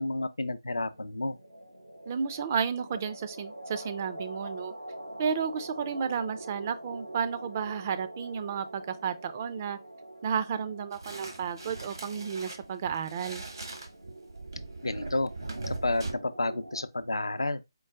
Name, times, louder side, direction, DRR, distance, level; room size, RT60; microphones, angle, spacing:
voice 1, 0.0-1.4 14.8-15.3 15.7-17.6, left 2 dB, 80° left, 0.4 m, -30 dB
sound 1, 0.8-16.8, right 1 dB, 90° right, 0.9 m, -45 dB
voice 2, 2.1-4.7 5.2-9.8 10.2-13.4, right 6 dB, 30° right, 0.4 m, -32 dB
sound 2, 10.9-16.1, right 3 dB, 70° right, 1.1 m, -40 dB
4.5 x 2.1 x 3.5 m
figure-of-eight pair, 150°, 2 cm